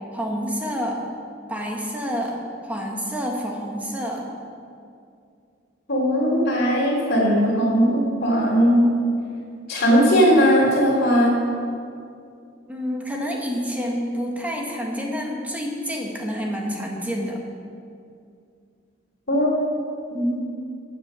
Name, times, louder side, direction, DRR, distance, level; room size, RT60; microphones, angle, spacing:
voice 1, 0.1-1.0 1.5-2.4 2.6-4.3 12.7-17.4, equal, 10° right, -1 dB, 1.6 m, -28 dB
voice 2, 5.9-8.8 9.7-11.3 19.3-19.5 20.1-20.4, equal, 55° left, -7 dB, 3.4 m, -18 dB
14.5 x 7.6 x 6.3 m, 2.4 s
head